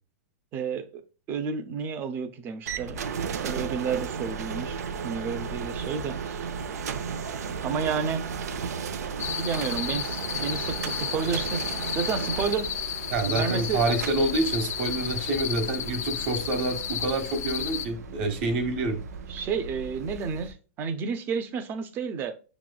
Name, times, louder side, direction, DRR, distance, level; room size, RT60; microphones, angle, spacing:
voice 1, 0.5-0.9 1.3-3.0 3.4-4.8 5.0-6.5 7.6-8.2 9.4-12.7 13.3-13.8 19.3-22.3, right 6 dB, 25° right, 0.4 m, -31 dB
sound 1, 2.7-20.5, right 6 dB, 90° right, 0.5 m, -35 dB
sound 2, 9.2-17.9, left 9 dB, 85° left, 0.5 m, -33 dB
voice 2, 13.1-19.0, right 2 dB, 50° right, 1.1 m, -27 dB
6.8 x 3.0 x 2.2 m
supercardioid pair, 155°, 8 cm